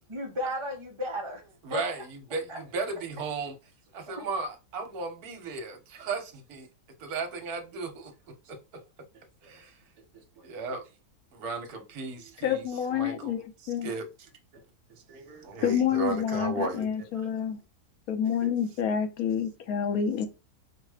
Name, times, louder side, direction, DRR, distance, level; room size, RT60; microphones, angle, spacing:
voice 1, 0.1-1.8 2.5-2.6 4.1-4.3, left 1 dB, 35° right, 0.4 m, -34 dB
voice 2, 1.6-3.5 3.9-6.7 7.0-8.1 8.5-8.8 9.4-9.7 10.4-10.8 11.3-12.6 12.9-13.4 13.6-14.1 14.9-16.9 18.4-18.5, right 4 dB, 60° right, 1.3 m, -35 dB
voice 3, 12.4-13.9 15.6-17.6 18.1-20.3, left 8 dB, 65° left, 1.1 m, -28 dB
4.9 x 2.1 x 4.8 m
omnidirectional pair, 1.9 m